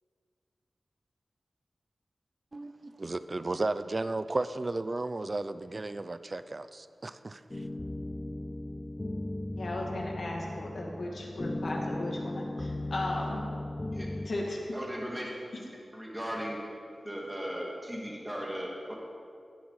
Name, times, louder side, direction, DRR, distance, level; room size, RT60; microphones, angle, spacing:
voice 1, 2.5-7.7, right 2 dB, 35° right, 13 dB, 0.4 m, -34 dB
sound 1, 7.5-14.3, left 1 dB, 25° left, 0.5 m, -37 dB
voice 2, 9.6-13.4 14.3-14.6, left 2 dB, 70° left, -2 dB, 2.3 m, -36 dB
voice 3, 14.7-15.3 15.9-16.8 17.0-18.9, equal, 10° right, -3 dB, 2.0 m, -37 dB
16.5 x 8.2 x 4.9 m, 2.3 s
wide cardioid pair, 100°, 0 cm